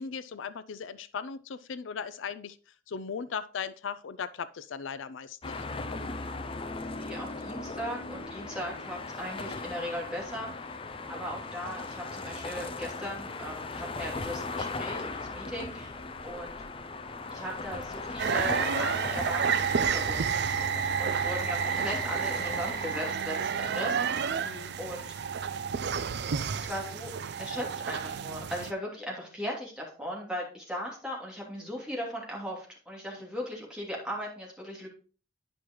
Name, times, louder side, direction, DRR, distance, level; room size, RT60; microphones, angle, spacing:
voice 1, 0.0-2.6 2.9-5.7 24.4-24.7, left 6 dB, 80° left, 15 dB, 0.4 m, -38 dB
sound 1, 5.4-23.2, left 3 dB, 30° left, 0.5 m, -38 dB
voice 2, 6.9-10.7 11.1-16.0 16.2-16.6 17.3-20.5 21.0-24.1 24.8-25.1 26.6-27.1 27.4-34.9, equal, 5° right, -3 dB, 2.8 m, -38 dB
sound 2, 18.2-28.7, right 7 dB, 60° right, 0.5 m, -30 dB
Bass guitar, 20.4-26.7, right 2 dB, 55° left, 2.9 m, -56 dB
10.0 x 6.2 x 3.1 m, 0.38 s
head